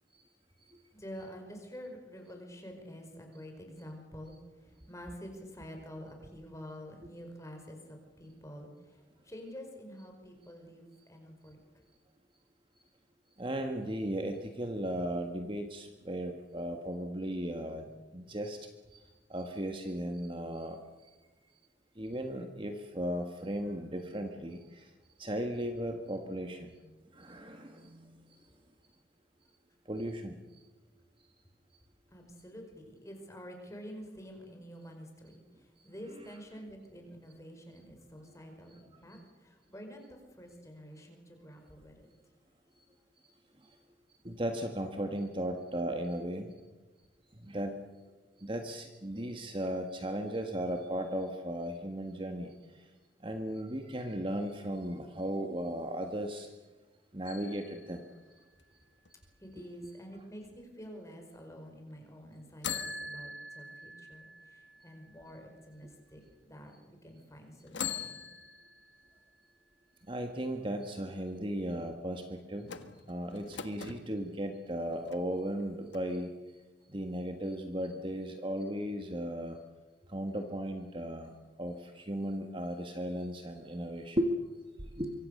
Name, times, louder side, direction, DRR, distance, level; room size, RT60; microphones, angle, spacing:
voice 1, 0.9-11.6 32.1-42.1 59.4-68.2, equal, 15° left, 3 dB, 5.1 m, -48 dB
voice 2, 13.4-20.8 21.0-21.1 21.9-24.9 25.2-26.8 27.1-28.4 29.8-30.6 38.7-39.0 43.6-43.8 44.2-46.5 47.3-47.8 48.4-52.9 53.2-56.5 57.1-58.0 59.6-59.9 70.1-72.8 73.1-76.3 76.9-79.6 80.1-84.3 85.0-85.1, right 1 dB, 25° right, 5 dB, 1.6 m, -36 dB
sound 1, 57.3-59.1 62.6-65.7 66.3-66.4 67.7-69.5 72.6-74.0 74.7-75.6 75.9-76.0, left 6 dB, 70° left, 1.7 m, -43 dB
25.0 x 24.5 x 6.7 m, 1.2 s
head